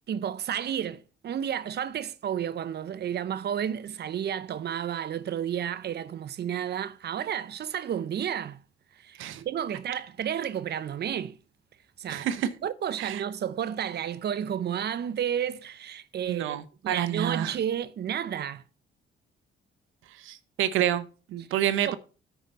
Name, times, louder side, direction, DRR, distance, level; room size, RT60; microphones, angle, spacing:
voice 1, 0.1-8.6 9.0-11.4 12.0-12.3 12.6-16.6 16.8-18.6 21.9-22.0, right 9 dB, 55° right, 0.8 m, -31 dB
voice 2, 12.1-12.5 13.0-13.2 16.3-17.6 20.2-21.9, right 11 dB, 85° right, 0.9 m, -28 dB
9.2 x 5.1 x 5.5 m
cardioid pair, 90°, 20 cm